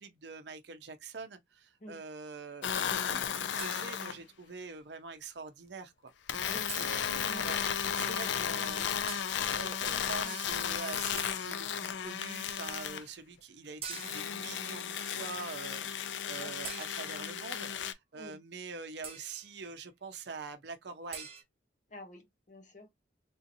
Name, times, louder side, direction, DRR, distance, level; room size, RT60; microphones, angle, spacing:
voice 1, 0.0-6.1 6.7-7.6 7.9-8.9 9.3-21.3, right 4 dB, 65° right, 0.6 m, -45 dB
sound 1, 2.6-4.2 6.3-13.0 13.9-17.9, left 8 dB, 75° left, 0.4 m, -34 dB
sound 2, 3.6-4.3 6.7-7.3 9.1-9.5 11.2-11.7 13.8-14.5 16.6-17.4 19.0-19.5 21.1-21.4, right 6 dB, 30° right, 0.7 m, -45 dB
voice 2, 6.4-7.5 7.8-9.1 9.6-10.4 16.2-16.5 17.0-17.1 18.1-18.4 21.9-23.0, left 1 dB, 40° left, 0.8 m, -49 dB
3.6 x 2.7 x 2.6 m
head